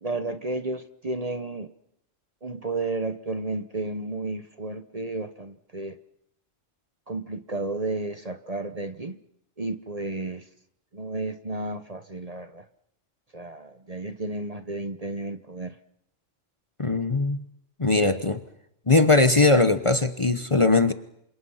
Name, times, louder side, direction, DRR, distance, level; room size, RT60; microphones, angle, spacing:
voice 1, 0.0-1.7 2.4-6.0 7.1-9.2 9.6-10.5 10.9-12.6 13.3-15.7, right 2 dB, 30° right, 10 dB, 1.0 m, -32 dB
voice 2, 16.8-17.4 17.8-18.4 18.9-20.9, left 3 dB, 25° left, 9 dB, 1.0 m, -20 dB
28.0 x 26.5 x 5.7 m, 0.76 s
omnidirectional pair, 1.3 m